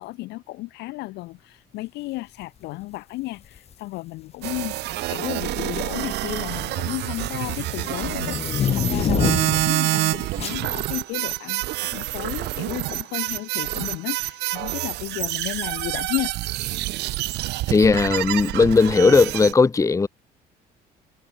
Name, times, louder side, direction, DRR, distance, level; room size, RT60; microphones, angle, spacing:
voice 1, 0.0-16.3, left 20 dB, 90° left, 2.3 m, -33 dB
sound 1, 3.4-3.7 4.7-5.2 5.5-9.8 10.4-10.6, left 9 dB, 40° left, 0.5 m, -27 dB
sound 2, 4.4-19.5, right 17 dB, 80° right, 2.4 m, -27 dB
voice 2, 17.7-20.1, left 4 dB, 20° left, 1.0 m, -17 dB
cardioid pair, 110°, 17 cm